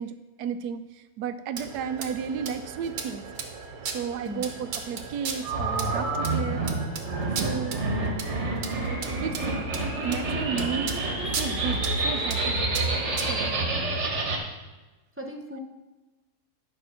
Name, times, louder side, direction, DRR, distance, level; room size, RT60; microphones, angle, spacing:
voice 1, 0.0-3.2 3.8-6.6 7.4-7.8 9.2-9.4 10.0-11.0 11.3-12.6 13.3-13.9, right 7 dB, 90° right, 11 dB, 1.2 m, -33 dB
sound 1, 1.6-13.4, right 5 dB, 75° right, 1.5 m, -37 dB
sound 2, 5.4-14.4, right 2 dB, 50° right, 1.6 m, -28 dB
voice 2, 13.6-14.0 15.2-15.6, equal, 15° right, 1 dB, 0.4 m, -38 dB
10.0 x 5.3 x 5.7 m, 1.2 s
omnidirectional pair, 1.6 m